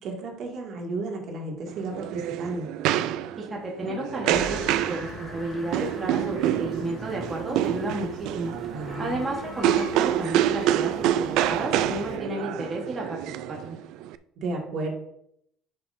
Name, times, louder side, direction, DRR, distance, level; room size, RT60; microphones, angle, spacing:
voice 1, 0.0-2.7 8.7-9.2 14.4-14.9, right 2 dB, 55° right, 0 dB, 2.2 m, -33 dB
sound 1, 1.7-14.1, right 12 dB, 75° right, 0.4 m, -27 dB
voice 2, 3.4-8.5 9.0-13.8, right 2 dB, 25° right, -2 dB, 1.3 m, -32 dB
sound 2, 4.3-12.2, left 2 dB, 25° left, 2.6 m, -41 dB
10.5 x 6.2 x 2.7 m, 0.75 s
cardioid pair, 120°, 0 cm